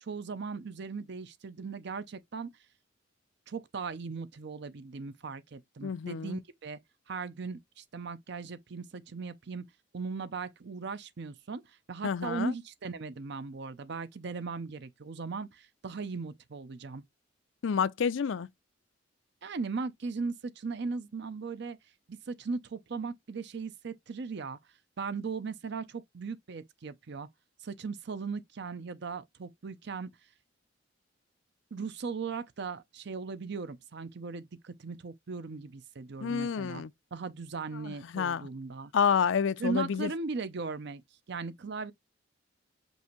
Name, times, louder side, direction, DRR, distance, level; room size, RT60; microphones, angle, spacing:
voice 1, 0.0-2.5 3.5-6.8 7.1-9.6 9.9-11.6 11.9-17.0 19.4-21.8 22.1-24.6 25.0-27.3 27.6-30.1 31.7-36.8 37.1-38.9 39.6-41.0 41.3-41.9, right 4 dB, 60° right, 0.6 m, -38 dB
voice 2, 5.8-6.4 12.0-12.5 17.6-18.5 36.2-36.9 37.9-38.5 38.9-40.1, left 6 dB, 75° left, 0.4 m, -29 dB
5.4 x 2.6 x 3.0 m
head